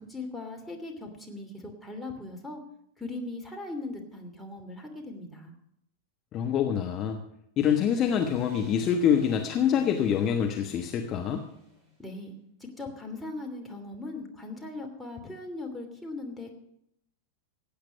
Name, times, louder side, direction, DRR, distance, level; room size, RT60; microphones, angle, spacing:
voice 1, 0.0-2.6 3.0-5.5 12.0-12.4 12.8-16.5, left 2 dB, 5° left, 0 dB, 2.8 m, -39 dB
voice 2, 6.3-7.2 7.6-11.4, left 8 dB, 30° left, 4 dB, 1.2 m, -25 dB
sound 1, 7.6-12.0, left 3 dB, 20° right, 4.6 m, -49 dB
16.0 x 8.8 x 5.7 m, 0.75 s
figure-of-eight pair, 90°, 0 cm